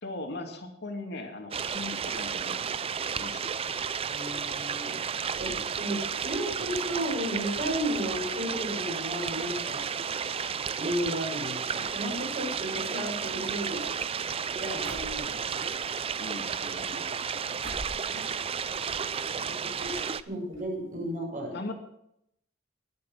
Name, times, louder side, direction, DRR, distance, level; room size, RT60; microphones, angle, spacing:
voice 1, 0.0-2.7 3.2-3.6 5.5-5.7 16.2-17.2 19.9-20.1 21.5-21.7, left 2 dB, 55° left, 3 dB, 2.4 m, -40 dB
sound 1, 1.5-20.2, right 6 dB, 30° right, 0.4 m, -32 dB
voice 2, 4.1-5.0 5.4-9.8 10.8-13.8 14.6-15.7 18.1-18.3 19.4-21.6, equal, 45° right, -1 dB, 5.9 m, -34 dB
sound 2, 12.8-15.7 16.6-17.4 17.6-18.1 18.4-19.2 19.4-19.5 19.7-19.8 20.5-20.6 20.9-21.1, right 1 dB, 90° right, 2.9 m, -44 dB
21.0 x 8.2 x 6.3 m, 0.77 s
head